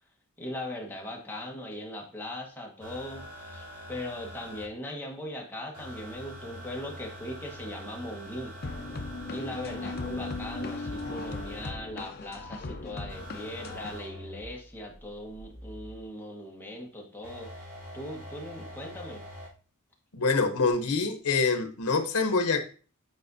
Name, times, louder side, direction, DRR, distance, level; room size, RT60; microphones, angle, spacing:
voice 1, 0.4-8.5 9.3-19.2, left 1 dB, 10° left, -1 dB, 1.3 m, -39 dB
sound 1, 2.8-4.7 5.7-11.7 13.1-16.1 17.2-19.5 20.7-20.8, equal, 80° right, 2.7 m, -45 dB
sound 2, 8.6-14.0, left 3 dB, 45° left, 0.6 m, -37 dB
voice 2, 20.1-22.6, left 4 dB, 85° left, 6 dB, 0.9 m, -26 dB
8.4 x 4.3 x 2.7 m, 0.39 s
head